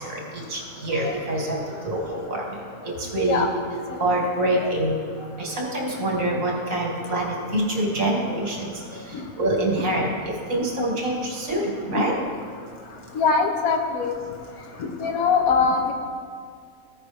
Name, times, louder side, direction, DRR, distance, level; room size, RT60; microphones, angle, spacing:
voice 1, 0.0-3.5 3.9-12.2, right 1 dB, 70° right, -1 dB, 2.0 m, -26 dB
voice 2, 13.1-14.1 14.8-15.9, left 5 dB, 85° left, 3 dB, 1.4 m, -22 dB
14.5 x 5.2 x 3.4 m, 2.1 s
omnidirectional pair, 1.5 m